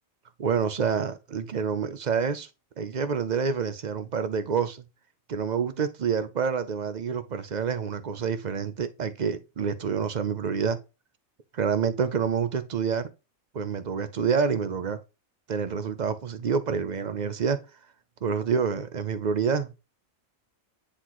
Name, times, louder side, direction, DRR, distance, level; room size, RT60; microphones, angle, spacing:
voice 1, 0.4-2.5 2.8-4.8 5.3-10.8 11.5-13.1 13.5-15.0 15.5-17.6 18.2-19.7, right 6 dB, 50° right, 0.5 m, -27 dB
9.8 x 4.0 x 3.0 m
omnidirectional pair, 1.4 m